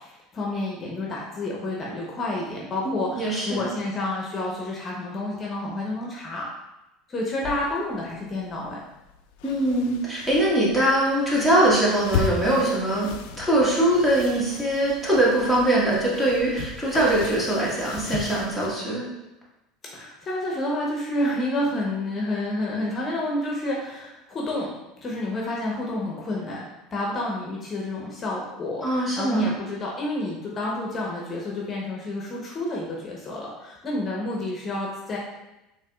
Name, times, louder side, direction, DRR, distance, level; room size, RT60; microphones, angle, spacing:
voice 1, 0.0-6.5 7.1-8.8 19.8-24.7 25.0-26.6 26.9-35.2, left 1 dB, 35° left, -2 dB, 0.8 m, -29 dB
voice 2, 2.8-3.6 9.4-13.1 13.4-19.1 28.8-29.6, right 1 dB, 10° right, -6 dB, 1.4 m, -22 dB
rustling of bed comforter pillow, 7.4-18.7, left 6 dB, 75° left, 0.3 m, -36 dB
4.5 x 3.0 x 2.3 m, 0.96 s
supercardioid pair, 100°, 0 cm